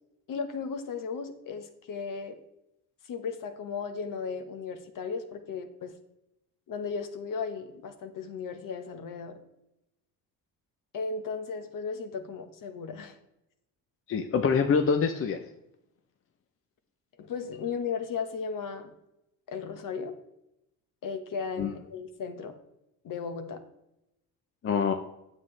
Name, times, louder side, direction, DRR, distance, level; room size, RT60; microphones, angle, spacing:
voice 1, 0.3-2.4 3.1-5.9 6.7-9.4 10.9-13.2 17.2-18.9 19.5-20.2 21.0-22.5 23.0-23.6, left 5 dB, 55° left, 8 dB, 1.2 m, -35 dB
voice 2, 14.1-15.4 21.6-21.7 24.6-24.9, left 6 dB, 35° left, 6 dB, 0.7 m, -25 dB
9.2 x 7.5 x 3.3 m, 0.85 s
cardioid pair, 95°, 38 cm